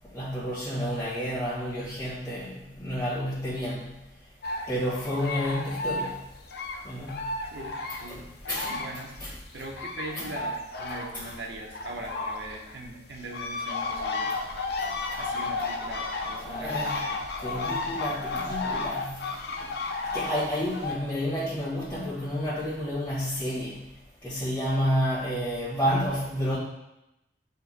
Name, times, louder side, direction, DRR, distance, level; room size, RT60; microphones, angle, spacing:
voice 1, 0.1-3.9 4.7-6.2 6.8-7.2 8.1-8.2 8.5-8.7 9.2-9.3 10.1-10.2 14.8-15.4 16.4-17.0 17.4-19.2 19.6-19.7 20.1-23.8 24.2-26.6, equal, 15° left, -11 dB, 1.6 m, -30 dB
sound 1, 4.4-9.2 9.5-20.9, left 3 dB, 60° left, 0.6 m, -33 dB
voice 2, 7.5-9.2 9.5-14.3 15.2-17.2, right 2 dB, 75° right, 0 dB, 1.0 m, -40 dB
9.2 x 4.6 x 2.2 m, 0.89 s
head